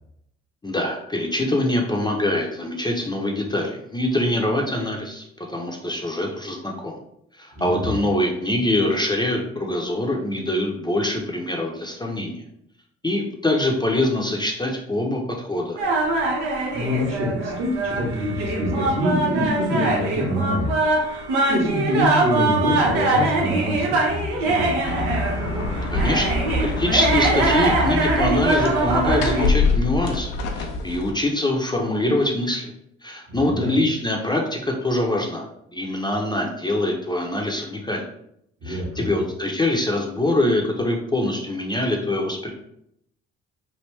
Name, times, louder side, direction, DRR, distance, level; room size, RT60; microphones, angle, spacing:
voice 1, 0.6-7.0 7.3-12.4 13.0-15.8 25.9-26.3 26.6-32.7 33.0-35.5 35.7-38.0 38.6-42.5, left 1 dB, 15° left, 0 dB, 0.6 m, -24 dB
voice 2, 7.5-7.9 16.7-20.8 21.5-24.8 33.3-33.8 38.6-39.1, equal, 55° right, -2 dB, 1.3 m, -25 dB
sound 1, 15.8-29.5, right 2 dB, 85° right, 0.8 m, -23 dB
sound 2, 24.8-31.1, left 3 dB, 80° left, 0.6 m, -25 dB
3.3 x 2.5 x 3.1 m, 0.75 s
hypercardioid pair, 55°, 31 cm